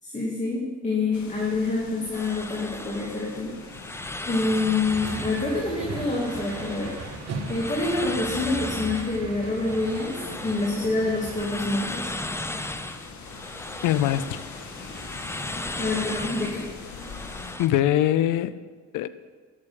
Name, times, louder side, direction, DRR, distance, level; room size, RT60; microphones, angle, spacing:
voice 1, 0.0-3.5 3.8-3.9 4.2-6.9 7.5-12.1 15.8-16.7, left 3 dB, 25° left, 2.5 m, -27 dB
sound 1, 1.1-17.6, left 4 dB, 70° left, 1.9 m, -43 dB
sound 2, 2.1-17.7, left 2 dB, 10° left, 0.6 m, -36 dB
sound 3, 4.9-11.4, right 4 dB, 60° right, 1.4 m, -38 dB
voice 2, 13.8-14.4 17.6-18.6 18.9-19.1, left 12 dB, 85° left, 0.5 m, -22 dB
12.5 x 6.9 x 7.1 m
cardioid pair, 90°, 30 cm